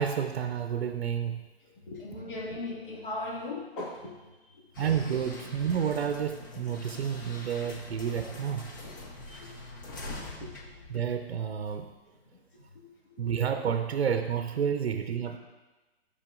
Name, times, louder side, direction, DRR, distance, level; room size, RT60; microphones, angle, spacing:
voice 1, 0.0-1.4 4.8-8.6 10.9-11.9 13.2-15.4, right 8 dB, 75° right, 7 dB, 0.6 m, -30 dB
voice 2, 1.9-4.2 6.6-6.8 7.6-7.7 8.9-9.5 10.1-10.2 12.8-13.3, left 2 dB, 55° left, -2 dB, 2.0 m, -39 dB
sound 1, 4.7-11.7, left 2 dB, 20° left, 0.5 m, -44 dB
10.5 x 5.6 x 2.4 m, 1.2 s
hypercardioid pair, 145°, 32 cm